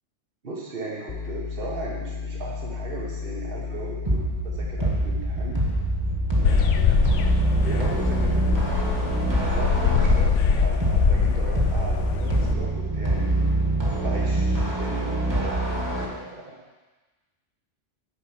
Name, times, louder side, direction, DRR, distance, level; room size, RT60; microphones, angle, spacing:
voice 1, 0.4-5.6 6.4-7.1 7.6-8.4 9.2-13.5 14.0-16.6, right 3 dB, 50° right, -3 dB, 1.7 m, -37 dB
sound 1, 1.1-12.5, left 5 dB, 45° left, 0.4 m, -33 dB
sound 2, 4.1-16.1, right 2 dB, 20° right, 1.8 m, -25 dB
sound 3, 6.4-12.5, left 7 dB, 90° left, 1.0 m, -23 dB
9.6 x 5.1 x 7.8 m, 1.2 s
omnidirectional pair, 1.2 m